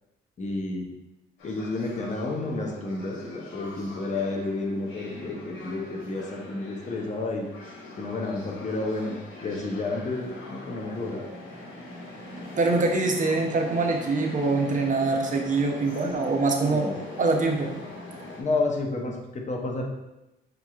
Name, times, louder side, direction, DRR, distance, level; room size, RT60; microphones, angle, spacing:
voice 1, 0.4-0.9 1.4-7.5 8.0-9.1 9.4-11.3 16.6-17.0 18.4-19.8, left 2 dB, 35° left, 1 dB, 0.7 m, -30 dB
sound 1, 1.4-18.4, left 1 dB, 90° left, 1.0 m, -42 dB
voice 2, 12.6-16.8 17.2-17.7, right 3 dB, 40° right, 2 dB, 0.7 m, -24 dB
6.0 x 2.9 x 2.4 m, 0.97 s
cardioid pair, 90°, 20 cm